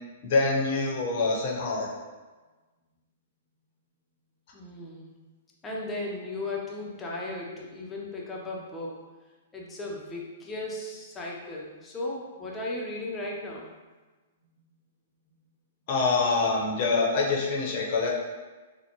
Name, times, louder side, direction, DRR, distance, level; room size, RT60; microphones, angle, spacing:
voice 1, 0.2-1.9 15.9-18.2, left 3 dB, 50° left, -2 dB, 0.8 m, -25 dB
voice 2, 4.5-5.2 5.6-9.0 9.5-13.7, left 2 dB, 15° left, -3 dB, 0.7 m, -36 dB
3.9 x 2.2 x 3.0 m, 1.3 s
hypercardioid pair, 125°, 0 cm